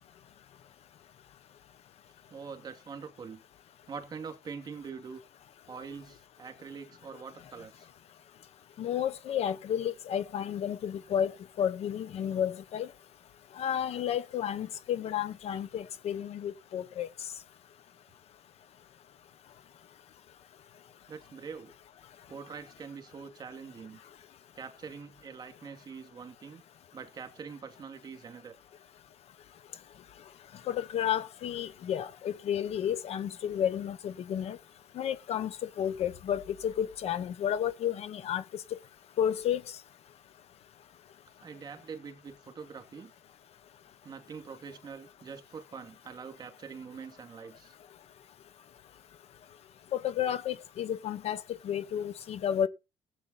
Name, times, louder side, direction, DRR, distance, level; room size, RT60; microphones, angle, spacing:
voice 1, 2.3-3.4 3.9-5.2 5.7-7.9 21.1-21.7 22.3-24.0 24.5-26.6 26.9-28.6 41.4-43.1 44.0-47.7, right 6 dB, 30° right, 2.5 m, -44 dB
voice 2, 8.8-12.9 13.6-17.1 30.7-34.6 35.0-38.4 38.7-38.8 39.2-39.6 49.9-52.7, left 9 dB, 50° left, 0.9 m, -31 dB
16.0 x 8.5 x 4.1 m
cardioid pair, 135°, 13 cm